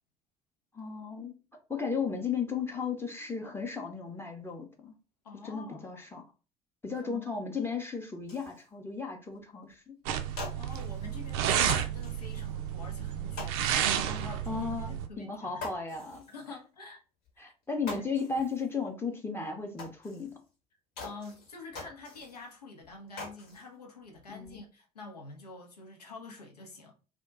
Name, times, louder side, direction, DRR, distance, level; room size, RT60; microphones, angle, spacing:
voice 1, 0.7-1.4 1.7-4.9 5.4-6.2 6.8-10.0 14.5-16.2 17.4-20.3 24.3-24.6, left 5 dB, 10° left, 0.6 m, -35 dB
voice 2, 5.2-6.1 7.0-7.3 10.5-15.6 16.3-17.0 17.9-18.1 21.0-26.9, left 3 dB, 85° left, 0.6 m, -47 dB
sound 1, 8.2-8.7 9.3-9.4 9.7-9.8 10.2-11.1 11.6-12.5 13.4-14.2 14.5-14.7 15.0-15.1 15.5-16.5 17.3-17.4 17.6-18.7 19.0-19.1 19.8-20.5 21.0-22.5 22.8-23.7 24.0-24.6, left 3 dB, 60° left, 1.0 m, -44 dB
sound 2, 10.0-15.1, right 9 dB, 60° right, 0.4 m, -31 dB
2.3 x 2.1 x 3.8 m
figure-of-eight pair, 60°, 20 cm